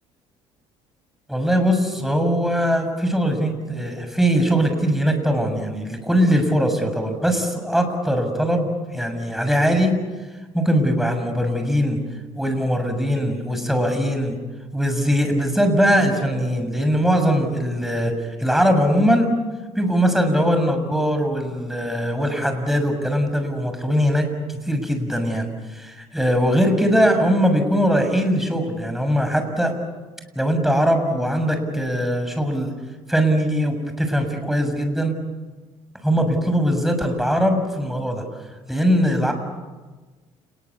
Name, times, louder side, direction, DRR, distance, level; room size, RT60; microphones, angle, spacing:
voice 1, 1.3-10.0 10.5-12.0 12.4-14.4 14.7-19.3 19.8-25.5 25.7-29.7 30.4-32.7 33.1-35.1 36.0-38.2 38.7-39.3, equal, ahead, 6 dB, 7.0 m, -21 dB
29.5 x 21.0 x 8.6 m, 1.3 s
hypercardioid pair, 65°, 15 cm